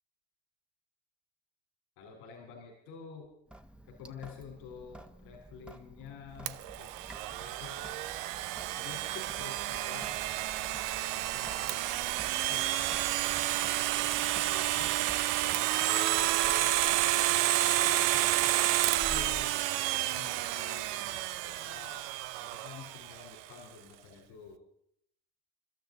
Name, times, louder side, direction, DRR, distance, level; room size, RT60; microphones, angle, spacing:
voice 1, 2.0-3.3 3.8-6.9 7.3-8.0 8.7-10.2 10.6-11.0 11.3-11.9 12.4-14.9 15.4-16.7 17.7-22.1 22.4-24.6, left 6 dB, 85° left, 2 dB, 4.1 m, -49 dB
Sink (filling or washing) / Drip, 3.5-15.9, right 1 dB, 5° right, 1.2 m, -52 dB
Domestic sounds home sounds, 6.5-23.2, right 15 dB, 80° right, 0.7 m, -30 dB
sound 1, 12.3-19.6, left 2 dB, 20° left, 1.4 m, -51 dB
28.5 x 12.5 x 4.0 m, 0.70 s
supercardioid pair, 75°, 32 cm